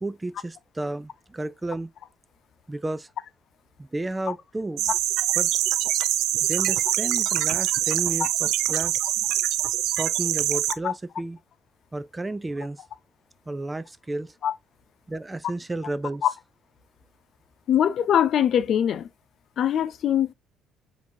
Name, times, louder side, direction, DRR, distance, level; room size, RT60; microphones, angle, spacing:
voice 1, 0.0-1.9 2.7-3.1 3.8-4.9 5.4-5.5 6.4-8.9 10.0-11.4 11.9-12.8 13.5-14.3 15.1-16.2, right 2 dB, 15° right, 0.4 m, -32 dB
sound 1, 4.8-10.7, right 13 dB, 75° right, 0.5 m, -24 dB
voice 2, 17.7-19.1 19.6-20.3, left 9 dB, 60° left, 0.6 m, -22 dB
7.1 x 2.8 x 2.7 m
supercardioid pair, 70°, 0 cm